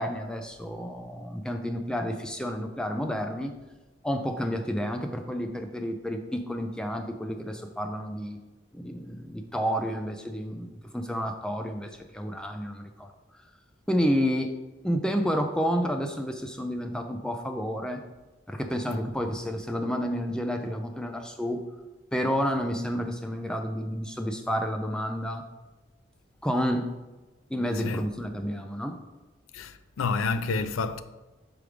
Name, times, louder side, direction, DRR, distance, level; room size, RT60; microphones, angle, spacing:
voice 1, 0.0-3.5 4.0-8.4 8.7-10.7 10.9-13.1 13.9-14.5 14.8-18.0 18.5-21.6 22.1-25.4 26.4-26.9 27.5-28.9, equal, 5° left, 0.4 m, -30 dB
voice 2, 29.5-31.0, left 4 dB, 85° left, 0.4 m, -29 dB
5.1 x 4.7 x 5.0 m
head